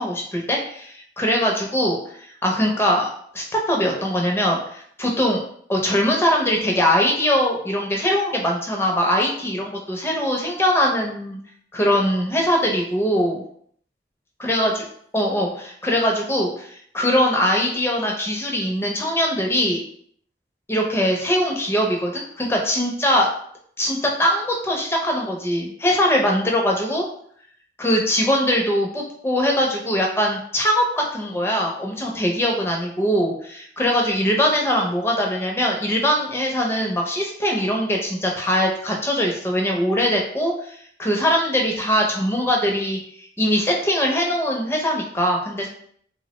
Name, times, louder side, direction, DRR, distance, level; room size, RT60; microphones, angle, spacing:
voice 1, 0.0-2.0 2.4-5.4 5.7-11.4 11.7-13.4 14.4-14.7 15.1-19.8 20.7-23.3 23.8-27.0 27.8-45.7, equal, 15° left, 0 dB, 0.4 m, -21 dB
3.3 x 2.0 x 2.9 m, 0.63 s
head